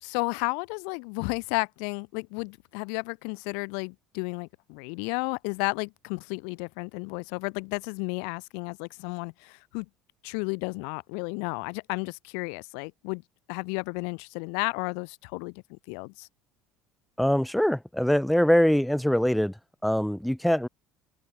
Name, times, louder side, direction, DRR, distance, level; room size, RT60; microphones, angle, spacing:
voice 1, 0.0-9.8 10.2-13.2 13.5-16.3, left 40 dB or more, 90° left, 1.5 m, -33 dB
voice 2, 17.2-19.5 19.8-20.7, equal, ahead, 1.1 m, -23 dB
open air
cardioid pair, 175°, 0 cm